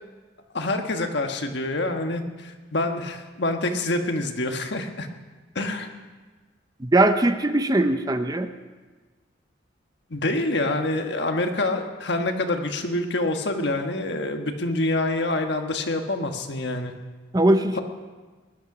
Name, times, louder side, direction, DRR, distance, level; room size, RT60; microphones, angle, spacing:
voice 1, 0.5-5.1 5.5-5.9 10.1-16.9, left 2 dB, 60° left, 5 dB, 1.4 m, -26 dB
voice 2, 6.8-8.5 17.3-17.8, right 1 dB, 20° right, 8 dB, 0.6 m, -20 dB
19.5 x 11.5 x 6.0 m, 1.4 s
head